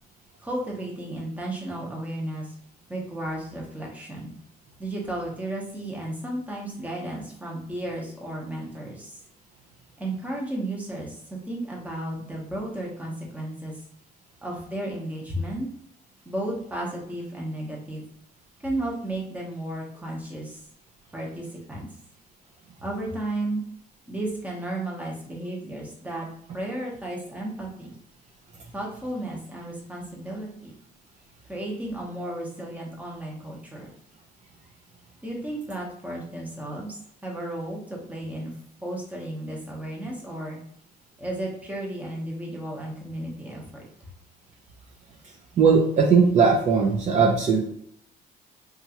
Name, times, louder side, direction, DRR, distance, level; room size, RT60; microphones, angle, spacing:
voice 1, 0.4-2.5 2.9-4.3 4.8-9.2 10.0-13.8 14.4-15.7 16.2-18.0 18.6-20.6 21.1-21.9 22.8-23.6 24.1-26.3 26.5-27.9 28.7-30.7 31.5-33.9 35.2-36.9 37.2-38.5 38.8-40.6 41.2-43.8, right 1 dB, 10° right, -2 dB, 0.9 m, -33 dB
voice 2, 45.6-47.6, right 5 dB, 45° right, -1 dB, 0.6 m, -19 dB
2.9 x 2.4 x 2.8 m, 0.67 s
cardioid pair, 110°, 17 cm